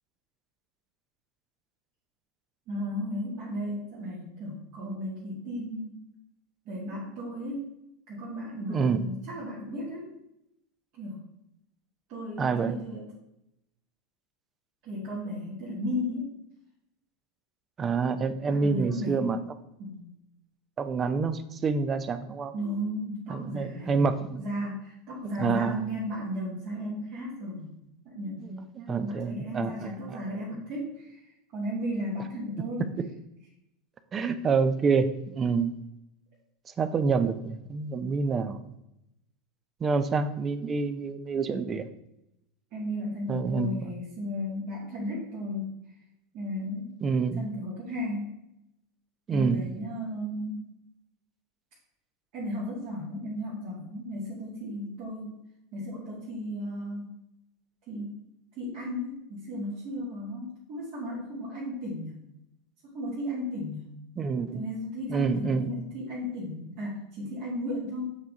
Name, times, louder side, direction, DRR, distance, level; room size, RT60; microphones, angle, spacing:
voice 1, 2.7-6.0 6.7-7.7 8.1-10.1 11.0-11.2 12.1-13.1 14.8-16.3 18.5-19.4 19.8-20.1 22.5-24.0 24.4-27.7 28.1-31.2 31.5-32.9 42.7-45.7 46.3-46.9 47.4-48.4 49.3-50.7 52.3-55.3 55.7-57.1 57.9-58.2 58.6-62.2 62.8-63.9 64.5-68.1, left 1 dB, 55° right, -6 dB, 1.7 m, -35 dB
voice 2, 8.7-9.1 12.4-12.8 17.8-19.4 20.8-22.5 23.3-24.4 25.4-25.8 28.4-28.5 28.9-30.2 33.0-33.1 34.1-35.7 36.8-38.6 39.8-41.9 43.3-43.8 47.0-47.5 49.3-49.7 64.2-64.6 65.1-65.7, right 5 dB, 30° right, 11 dB, 0.5 m, -27 dB
7.4 x 3.6 x 4.0 m, 0.85 s
hypercardioid pair, 85°, 0 cm